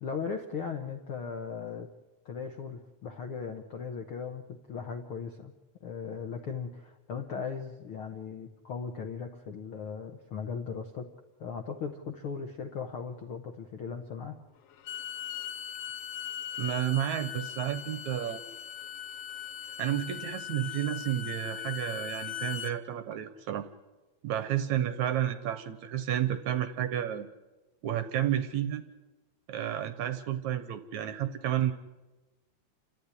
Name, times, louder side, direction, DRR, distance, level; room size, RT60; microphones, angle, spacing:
voice 1, 0.0-1.9 2.2-5.5 5.8-11.1 11.4-14.4, left 6 dB, 70° left, 5 dB, 1.3 m, -38 dB
Bowed string instrument, 14.7-22.8, left 10 dB, 85° left, 1.3 m, -39 dB
voice 2, 16.6-18.4 19.8-23.6 24.2-27.3 27.8-28.8 29.5-31.7, right 11 dB, 70° right, 11 dB, 1.9 m, -31 dB
29.5 x 13.5 x 9.9 m, 1.1 s
omnidirectional pair, 4.2 m